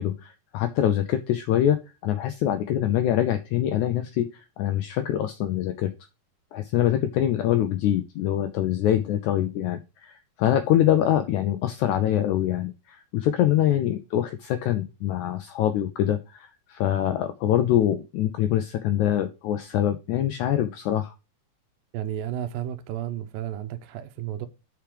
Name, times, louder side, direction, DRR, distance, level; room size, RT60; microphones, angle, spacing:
voice 1, 0.0-5.9 6.5-21.1, left 11 dB, 80° left, 1.7 m, -24 dB
voice 2, 21.9-24.5, right 11 dB, 85° right, 2.4 m, -32 dB
6.9 x 6.0 x 4.8 m
omnidirectional pair, 4.0 m